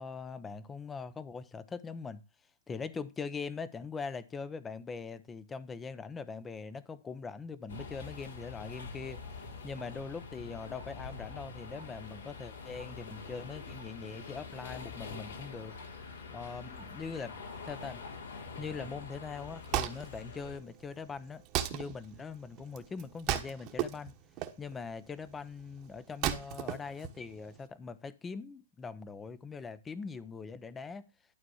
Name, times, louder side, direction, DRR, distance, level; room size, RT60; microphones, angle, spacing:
voice 1, 0.0-2.2 2.7-15.8 16.3-17.4 17.6-18.0 18.6-21.4 21.7-24.1 24.6-31.0, left 5 dB, 10° left, 0.7 m, -42 dB
sound 1, 7.7-20.6, left 4 dB, 85° left, 4.0 m, -45 dB
Wood, 19.3-27.7, right 11 dB, 30° right, 1.3 m, -37 dB
12.0 x 4.2 x 6.3 m
hypercardioid pair, 160°, 0 cm